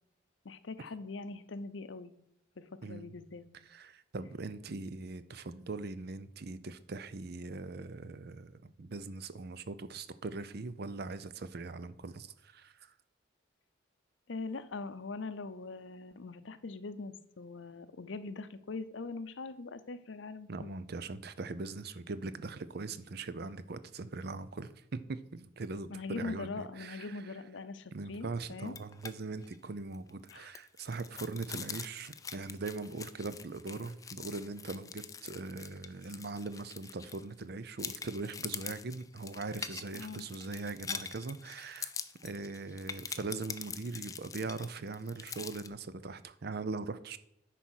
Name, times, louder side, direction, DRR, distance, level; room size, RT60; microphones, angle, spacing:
voice 1, 0.4-2.1 2.6-3.5 14.3-20.8 25.9-28.8 30.3-30.5 31.5-31.6 40.0-40.3, left 3 dB, 75° left, 13 dB, 0.7 m, -42 dB
voice 2, 2.8-3.1 3.7-12.9 20.5-27.3 27.9-41.9 42.2-47.2, right 3 dB, 55° right, 14 dB, 0.6 m, -41 dB
sound 1, 28.7-29.1 29.4-29.6 29.9-37.4 37.8-45.7, left 6 dB, 20° left, 0.4 m, -44 dB
9.9 x 4.2 x 6.3 m, 0.81 s
head